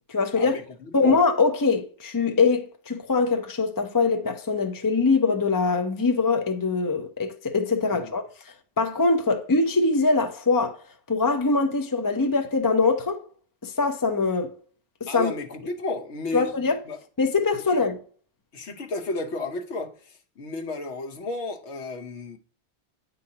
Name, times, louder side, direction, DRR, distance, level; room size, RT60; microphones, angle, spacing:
voice 1, 0.1-0.5 0.9-8.2 8.8-10.8 11.1-13.2 13.6-14.5 15.0-15.3 16.3-16.8 17.2-18.0, left 4 dB, 25° left, 0.4 m, -23 dB
voice 2, 15.1-16.5 16.9-17.0 18.5-22.4, left 2 dB, 75° left, 1.2 m, -33 dB
9.4 x 4.0 x 2.8 m
omnidirectional pair, 1.2 m